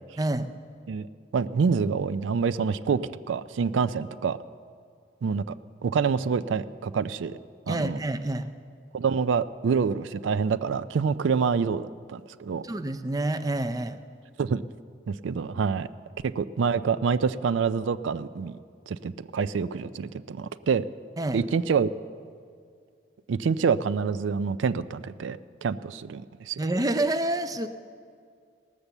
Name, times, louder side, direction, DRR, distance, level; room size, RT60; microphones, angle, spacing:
voice 1, 0.2-0.5 7.7-8.5 12.6-14.0 21.2-21.4 26.6-27.7, right 2 dB, 20° right, 10 dB, 0.4 m, -28 dB
voice 2, 1.3-4.4 5.2-5.5 5.8-7.4 7.7-8.0 8.9-12.6 14.4-14.6 15.1-15.9 16.2-18.6 18.9-20.8 21.3-21.9 23.3-26.6, right 5 dB, 80° right, 14 dB, 0.4 m, -27 dB
18.5 x 6.7 x 7.1 m, 2.2 s
head